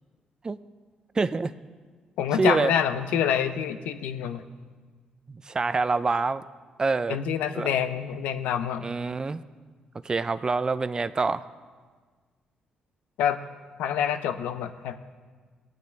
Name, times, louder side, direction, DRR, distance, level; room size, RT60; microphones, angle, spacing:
voice 1, 1.1-1.5 2.4-2.7 5.3-6.4 6.8-7.2 7.5-7.8 8.8-9.4 10.0-11.5, right 4 dB, 30° right, 14 dB, 0.4 m, -26 dB
voice 2, 2.2-4.4 7.1-8.9 13.2-13.4 13.8-15.0, left 8 dB, 85° left, 10 dB, 0.6 m, -27 dB
17.5 x 9.3 x 3.4 m, 1.5 s
cardioid pair, 70°, 3 cm